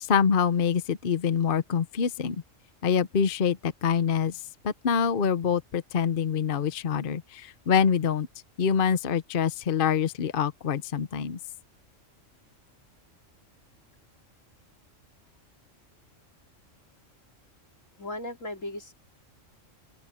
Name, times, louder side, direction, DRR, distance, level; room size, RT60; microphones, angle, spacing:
voice 1, 0.0-2.4 2.8-8.3 8.6-11.4, left 7 dB, 50° left, 0.9 m, -25 dB
voice 2, 18.0-18.9, left 1 dB, 85° left, 4.0 m, -36 dB
open air
omnidirectional pair, 1.3 m